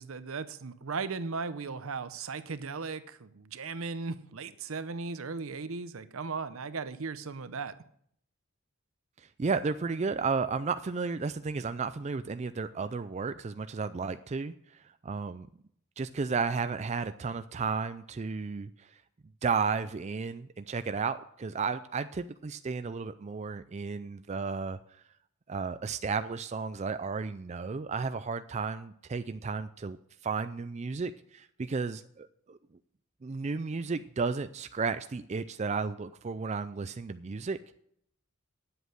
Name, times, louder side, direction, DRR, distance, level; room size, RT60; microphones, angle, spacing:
voice 1, 0.0-7.8, right 4 dB, 70° right, 13 dB, 0.7 m, -37 dB
voice 2, 9.4-14.5 15.0-15.5 16.0-18.9 19.4-24.8 25.5-30.0 30.2-32.6 33.2-37.8, right 4 dB, 30° right, 10 dB, 0.4 m, -33 dB
9.7 x 8.0 x 6.5 m, 0.67 s
head